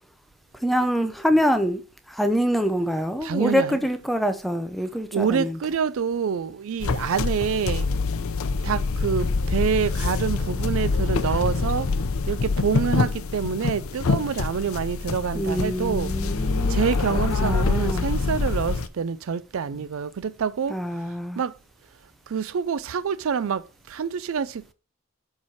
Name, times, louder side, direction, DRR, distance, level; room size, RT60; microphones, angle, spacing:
voice 1, 0.5-1.8 2.1-5.6 15.3-16.8 17.4-18.1 20.7-21.4, equal, ahead, 0.6 m, -25 dB
voice 2, 3.2-3.7 5.1-7.9 8.6-11.9 12.3-16.1 16.7-20.7 21.4-21.5 22.3-23.6 23.9-24.5, right 6 dB, 70° right, 0.4 m, -26 dB
sound 1, 6.8-18.9, left 4 dB, 75° left, 0.6 m, -25 dB
7.2 x 4.7 x 4.3 m
head